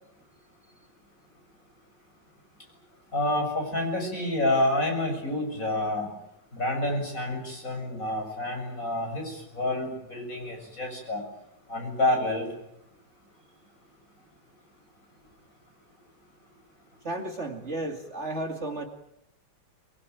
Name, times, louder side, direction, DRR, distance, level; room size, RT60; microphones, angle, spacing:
voice 1, 3.1-6.1 6.5-11.2 11.7-12.5, left 1 dB, 45° left, 3 dB, 7.5 m, -28 dB
voice 2, 17.0-18.9, right 2 dB, 40° right, 4 dB, 2.7 m, -33 dB
24.0 x 22.5 x 9.3 m, 0.82 s
omnidirectional pair, 1.9 m